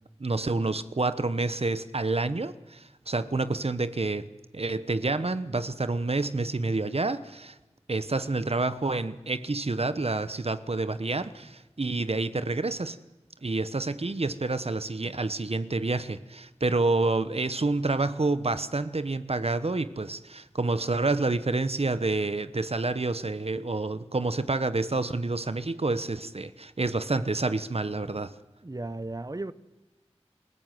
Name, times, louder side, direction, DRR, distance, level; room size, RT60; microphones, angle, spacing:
voice 1, 0.2-7.6 7.9-13.0 13.4-28.3, right 3 dB, 65° right, 1.0 m, -28 dB
voice 2, 28.3-29.5, right 2 dB, 35° right, 0.9 m, -36 dB
27.0 x 14.5 x 9.3 m
wide cardioid pair, 45°, 11 cm